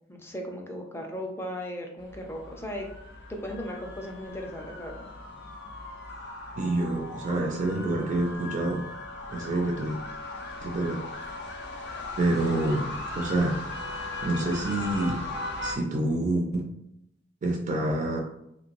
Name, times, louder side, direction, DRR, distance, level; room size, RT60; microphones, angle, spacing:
voice 1, 0.1-2.9 3.3-5.1, equal, 15° left, 2 dB, 0.5 m, -37 dB
sound 1, 2.0-15.8, left 2 dB, 65° left, 0.6 m, -38 dB
voice 2, 6.6-8.9 9.3-10.0 10.6-11.0 12.2-13.6 13.9-15.3 15.6-16.7 17.4-18.2, right 2 dB, 40° right, 1 dB, 0.4 m, -27 dB
3.2 x 2.9 x 2.5 m, 0.80 s
head